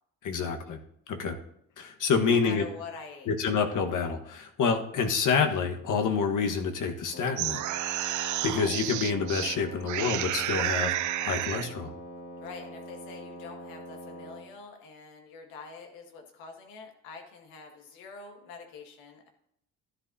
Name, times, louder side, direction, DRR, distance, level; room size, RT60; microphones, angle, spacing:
voice 1, 0.2-0.8 1.1-1.4 1.8-2.6 3.3-7.6 8.4-10.9 11.2-11.9, left 5 dB, 60° left, 5 dB, 1.3 m, -27 dB
voice 2, 2.2-3.3 12.4-19.3, left 5 dB, 90° left, 3 dB, 1.8 m, -45 dB
Wind instrument woodwind instrument, 7.1-14.5, equal, 35° left, 1.3 m, -43 dB
sound 1, 7.1-9.6 9.9-11.7, right 14 dB, 60° right, 0.5 m, -31 dB
12.0 x 11.0 x 2.7 m, 0.74 s
supercardioid pair, 65°, 35 cm